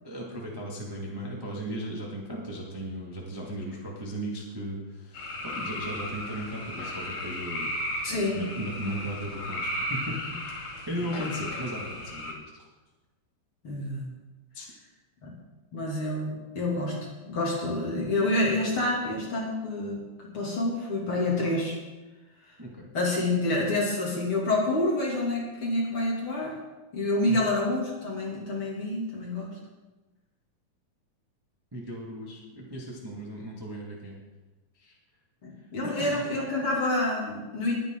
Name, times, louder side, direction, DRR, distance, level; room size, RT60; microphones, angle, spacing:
voice 1, 0.0-7.7 8.1-10.4 10.9-12.5 14.5-14.7 22.6-22.9 27.2-27.4 31.7-34.1 34.8-34.9 35.8-36.3, equal, 10° right, -3 dB, 1.6 m, -36 dB
sound 1, 5.1-12.3, equal, 75° left, 4.2 m, -35 dB
voice 2, 8.0-8.4 13.6-14.0 15.2-15.3 15.7-17.0 17.2-21.8 22.9-26.5 26.9-29.5 35.4-37.8, left 2 dB, 40° left, -3 dB, 3.5 m, -28 dB
20.5 x 9.6 x 4.0 m, 1.1 s
omnidirectional pair, 4.0 m